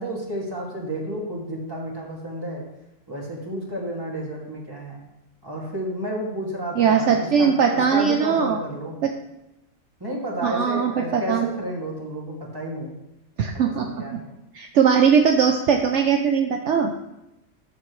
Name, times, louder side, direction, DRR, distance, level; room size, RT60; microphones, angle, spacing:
voice 1, 0.0-2.6 3.1-5.0 5.4-9.0 10.0-12.9 13.6-14.3, right 1 dB, 15° right, -3 dB, 2.5 m, -31 dB
voice 2, 6.8-8.6 9.0-9.1 10.4-11.5 13.4-14.0 14.5-16.9, right 7 dB, 65° right, 3 dB, 1.0 m, -20 dB
13.5 x 7.4 x 3.2 m, 0.90 s
omnidirectional pair, 1.4 m